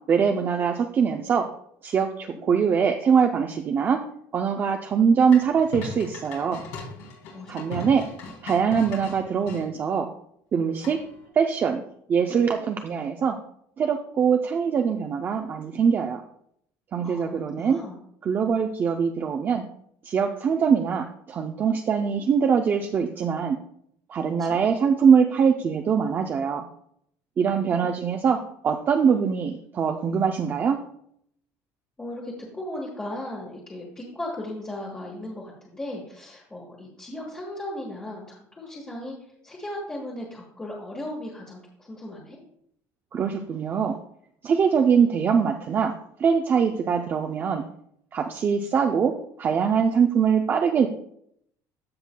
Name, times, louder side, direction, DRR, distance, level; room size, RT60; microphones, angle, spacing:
voice 1, 0.1-1.4 1.8-4.0 4.3-6.6 7.5-8.0 8.4-10.1 10.5-11.0 11.3-11.8 12.1-13.4 13.8-16.2 16.9-17.8 18.2-19.6 20.0-23.6 24.1-26.7 27.4-28.4 28.6-30.8 43.1-44.0 44.4-45.9 46.2-47.7 48.1-49.1 49.4-50.9, right 6 dB, 30° right, 4 dB, 0.4 m, -22 dB
sound 1, 5.3-9.6 10.8-11.3, left 3 dB, 90° left, 3.2 m, -38 dB
voice 2, 7.3-7.9 17.0-18.0 24.4-24.6 27.4-28.0 32.0-39.1 39.4-42.4, left 1 dB, 15° left, -3 dB, 1.3 m, -37 dB
14.5 x 5.6 x 2.2 m, 0.70 s
cardioid pair, 150°, 7 cm